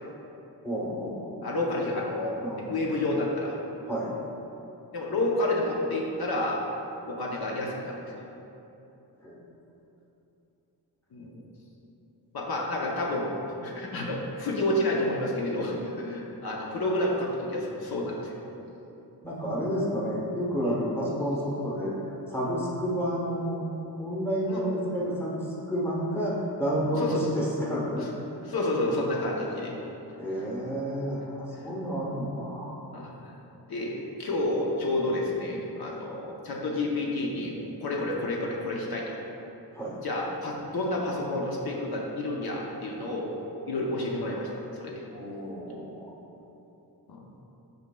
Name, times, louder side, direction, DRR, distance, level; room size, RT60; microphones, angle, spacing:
voice 1, 0.6-1.6 2.4-2.7 3.8-4.1 9.2-9.4 19.2-28.1 30.2-32.7 36.1-36.2 39.7-40.0 43.7-43.8 45.1-46.2, equal, 5° left, -5 dB, 1.0 m, -30 dB
voice 2, 1.4-2.4 2.7-3.5 4.9-6.6 7.1-8.2 11.1-11.4 12.3-18.4 20.6-20.8 24.5-24.6 27.0-27.2 28.4-29.8 32.9-33.4 33.7-37.5 37.8-39.1 40.0-43.3 43.7-45.0 47.1-47.3, left 1 dB, 65° left, -2 dB, 0.8 m, -30 dB
7.8 x 5.3 x 2.2 m, 3.0 s
wide cardioid pair, 125°, 40 cm